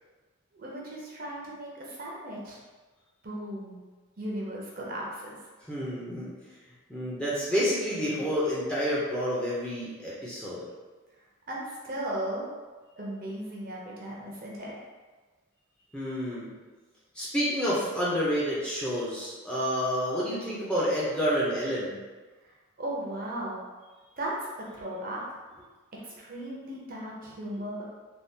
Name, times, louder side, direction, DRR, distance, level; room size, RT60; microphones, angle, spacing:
voice 1, 0.5-2.6 3.2-3.8 4.2-5.4 11.5-12.4 13.0-14.8 22.8-23.7 24.2-24.4 24.7-25.2 26.0-27.8, right 1 dB, 40° right, -4 dB, 0.6 m, -36 dB
voice 2, 5.7-6.3 6.9-10.6 15.9-16.5 17.1-22.0, equal, 5° left, -8 dB, 0.6 m, -29 dB
3.5 x 2.3 x 2.7 m, 1.3 s
head